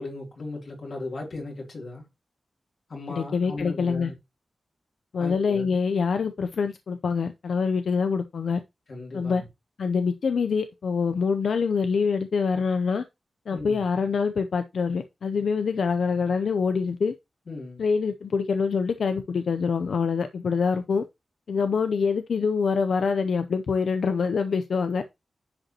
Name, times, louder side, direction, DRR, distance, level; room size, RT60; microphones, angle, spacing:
voice 1, 0.0-2.0 2.9-4.1 5.2-5.8 8.9-9.4 13.5-13.8 17.5-17.8, left 2 dB, 65° left, 3.0 m, -36 dB
voice 2, 3.1-4.1 5.1-8.6 9.1-9.4 9.8-13.0 13.5-17.1 17.8-21.0 21.5-25.0, left 5 dB, 85° left, 0.6 m, -25 dB
10.5 x 5.2 x 2.9 m
wide cardioid pair, 100°, 0 cm